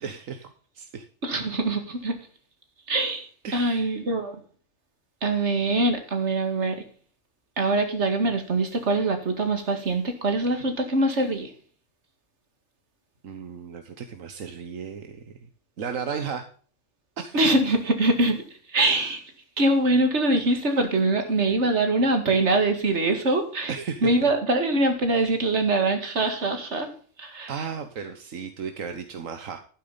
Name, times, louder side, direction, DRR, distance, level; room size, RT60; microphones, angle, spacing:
voice 1, 0.0-0.5 0.7-1.1 3.4-3.9 13.2-15.4 15.8-16.5 17.2-17.4 21.3-21.6 23.7-24.3 27.5-29.6, right 6 dB, 80° right, 7 dB, 1.5 m, -35 dB
voice 2, 1.2-2.1 2.9-3.3 3.5-4.4 5.2-6.8 7.6-11.5 17.3-18.4 18.7-19.2 19.6-23.7 24.0-26.9 27.2-27.5, right 2 dB, 60° right, 6 dB, 2.4 m, -23 dB
12.0 x 9.3 x 4.0 m, 0.42 s
omnidirectional pair, 1.3 m